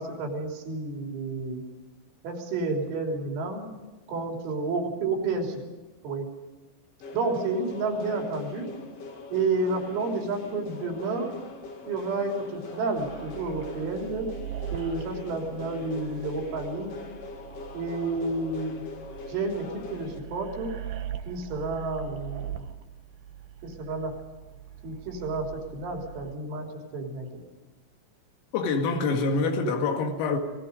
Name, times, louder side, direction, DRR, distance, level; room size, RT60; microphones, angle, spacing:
voice 1, 0.0-1.6 2.2-3.6 4.1-5.6 6.0-6.3 7.1-8.7 9.3-11.3 11.9-14.3 14.7-16.9 17.7-18.8 19.3-20.7 21.3-22.6 23.6-24.1 24.8-26.7 26.9-27.3, right 3 dB, 65° right, 5.7 m, -30 dB
sound 1, 7.0-20.2, left 3 dB, 55° left, 1.7 m, -42 dB
sound 2, 13.0-26.3, right 11 dB, 90° right, 1.9 m, -41 dB
voice 2, 28.5-30.4, left 4 dB, 85° left, 5.0 m, -25 dB
29.0 x 20.0 x 5.2 m
omnidirectional pair, 6.0 m